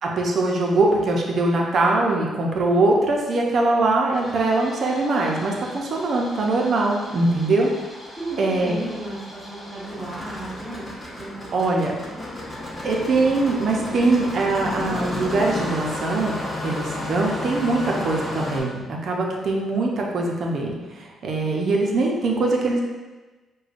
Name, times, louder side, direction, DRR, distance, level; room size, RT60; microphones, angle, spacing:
voice 1, 0.0-7.7 8.4-8.8 11.5-11.9 12.8-22.8, right 2 dB, 55° right, -1 dB, 0.6 m, -22 dB
Engine starting, 4.1-18.6, left 1 dB, 20° left, 1.1 m, -33 dB
voice 2, 8.2-11.6 12.0-12.3, right 1 dB, 25° right, -7 dB, 1.5 m, -35 dB
4.8 x 2.2 x 2.5 m, 1.2 s
cardioid pair, 90°, 0 cm